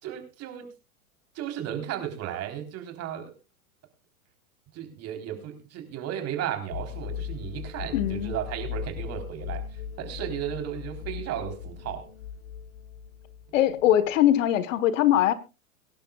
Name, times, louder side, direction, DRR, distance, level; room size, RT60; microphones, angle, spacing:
voice 1, 0.0-0.7 1.3-3.3 4.7-12.1, right 10 dB, 35° right, 3.8 m, -35 dB
sound 1, 6.7-14.1, left 8 dB, 80° left, 1.4 m, -38 dB
voice 2, 7.9-8.3 13.5-15.3, left 12 dB, 60° left, 1.4 m, -21 dB
23.5 x 11.5 x 2.4 m
hypercardioid pair, 115°, 43 cm